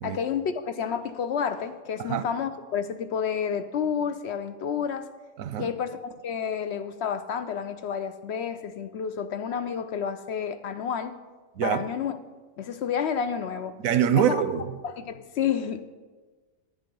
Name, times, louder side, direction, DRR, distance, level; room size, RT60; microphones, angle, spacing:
voice 1, 0.0-5.1 5.6-11.1 11.6-12.2 12.6-13.8 14.1-14.4 14.8-15.8, left 7 dB, 65° left, 0.8 m, -30 dB
voice 2, 5.4-5.7 11.6-11.8 13.8-14.7, right 9 dB, 90° right, 1.1 m, -24 dB
10.5 x 9.4 x 5.3 m
omnidirectional pair, 1.4 m